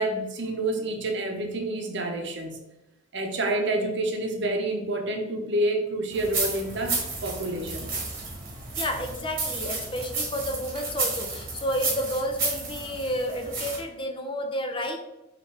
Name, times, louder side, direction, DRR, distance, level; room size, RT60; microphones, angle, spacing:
voice 1, 0.0-2.6 3.1-7.9, right 1 dB, 65° right, 3 dB, 0.7 m, -28 dB
sound 1, 6.1-13.8, right 3 dB, 50° right, 1.4 m, -32 dB
voice 2, 8.7-15.0, equal, 25° left, 4 dB, 0.5 m, -31 dB
5.8 x 2.5 x 3.2 m, 0.95 s
head